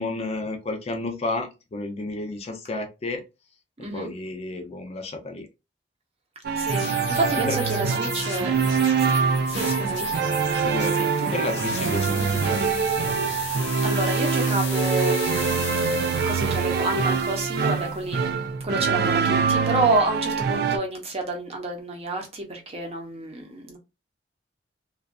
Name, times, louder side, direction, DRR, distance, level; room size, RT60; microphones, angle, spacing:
voice 1, 0.0-3.2 3.8-5.5 7.5-7.6 10.6-12.7, left 2 dB, 35° left, 0.4 m, -31 dB
voice 2, 3.8-4.1 6.6-8.5 9.5-10.1 13.2-15.6 16.3-18.2 18.6-23.8, right 2 dB, 35° right, 0.7 m, -28 dB
sound 1, 6.4-20.8, right 5 dB, 60° right, 0.3 m, -24 dB
sound 2, 6.7-18.1, left 5 dB, 85° left, 0.9 m, -36 dB
2.5 x 2.3 x 2.2 m
head